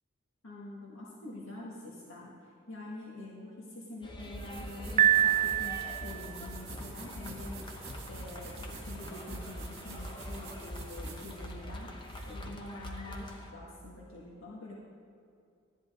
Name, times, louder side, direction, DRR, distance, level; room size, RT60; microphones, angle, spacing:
voice 1, 0.4-7.6 8.1-11.9 12.3-14.8, left 2 dB, 65° left, -5 dB, 1.7 m, -46 dB
sound 1, 4.0-13.5, equal, 20° left, 0.9 m, -43 dB
sound 2, 4.2-12.5, right 3 dB, 50° right, 1.9 m, -49 dB
Piano, 5.0-6.3, right 11 dB, 35° right, 0.3 m, -25 dB
13.0 x 10.5 x 3.7 m, 2.5 s
head